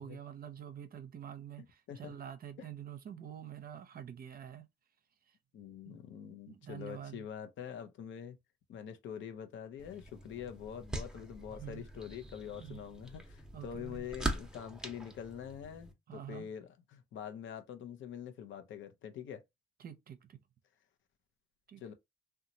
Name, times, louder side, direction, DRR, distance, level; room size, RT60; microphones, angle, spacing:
voice 1, 0.0-4.7 5.3-5.4 5.8-6.0 6.5-7.3 11.5-11.8 12.6-12.8 13.5-14.1 16.1-16.5 19.8-20.4 21.7-21.8, right 9 dB, 50° right, 0.6 m, -47 dB
voice 2, 5.5-8.4 8.7-19.4 21.8-21.9, left 8 dB, 70° left, 0.6 m, -45 dB
sound 1, 9.8-15.9, right 1 dB, 5° right, 0.7 m, -43 dB
2.9 x 2.3 x 2.6 m
cardioid pair, 90°, 20 cm